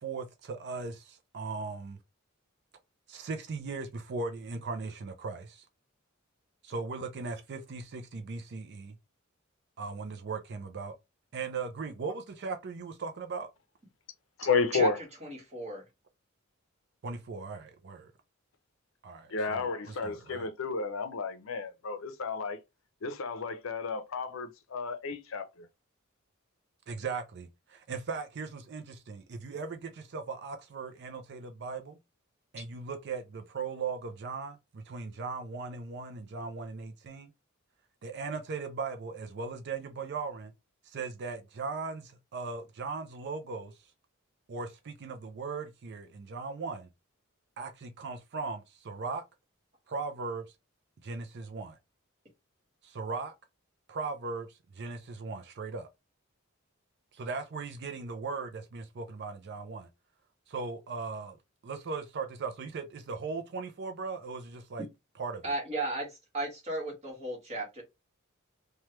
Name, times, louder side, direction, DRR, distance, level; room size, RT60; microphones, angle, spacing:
voice 1, 0.0-2.0 3.1-5.6 6.6-9.0 9.8-10.9 11.3-13.5 17.0-18.1 19.0-20.5 26.9-32.0 32.5-37.3 38.0-40.5 40.8-43.8 44.5-46.9 47.6-49.2 49.9-50.4 51.0-51.8 52.8-53.3 53.9-55.9 57.1-59.9 60.5-61.4 61.6-64.9 65.2-65.4, right 4 dB, 55° right, 0.4 m, -38 dB
voice 2, 14.4-15.0 19.3-22.6 23.0-25.7, left 4 dB, 70° left, 0.5 m, -32 dB
voice 3, 15.2-15.8 32.6-32.7 65.4-66.1 66.3-67.8, right 2 dB, 35° right, 1.4 m, -34 dB
3.1 x 2.2 x 2.9 m
head